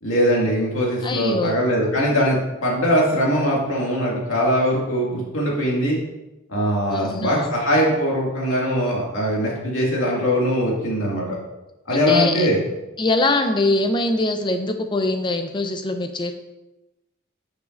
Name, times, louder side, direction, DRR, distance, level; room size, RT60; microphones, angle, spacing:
voice 1, 0.0-6.0 6.5-11.4 11.9-12.6, equal, 65° left, -3 dB, 2.1 m, -21 dB
voice 2, 1.0-1.6 6.9-7.5 11.9-12.5 13.0-16.3, left 2 dB, 20° left, 6 dB, 0.5 m, -22 dB
8.8 x 6.2 x 2.6 m, 0.99 s
head